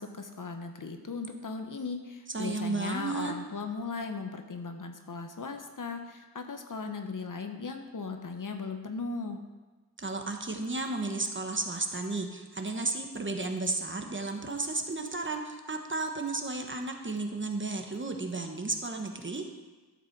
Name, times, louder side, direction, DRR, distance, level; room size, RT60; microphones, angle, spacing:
voice 1, 0.0-9.4, left 4 dB, 55° left, 5 dB, 0.9 m, -37 dB
voice 2, 2.3-3.3 10.0-19.5, right 3 dB, 30° right, 4 dB, 1.1 m, -33 dB
12.0 x 7.4 x 4.6 m, 1.2 s
wide cardioid pair, 100°, 37 cm